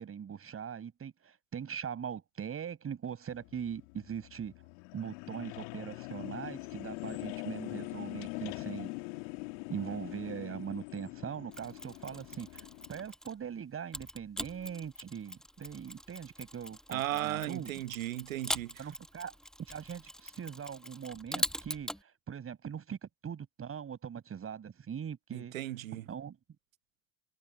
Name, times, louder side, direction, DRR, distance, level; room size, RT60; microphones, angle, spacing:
voice 1, 0.0-4.5 4.9-8.9 9.7-17.7 18.8-19.3 19.7-25.5 25.9-26.4, right 8 dB, 35° right, 7.6 m, -41 dB
sound 1, 3.3-13.0, left 29 dB, 65° left, 2.7 m, -43 dB
Mechanisms, 11.5-13.4 13.9-22.0, equal, ahead, 1.5 m, -42 dB
voice 2, 16.9-18.9 25.3-26.1, right 14 dB, 80° right, 1.0 m, -36 dB
hypercardioid pair, 75°, 40 cm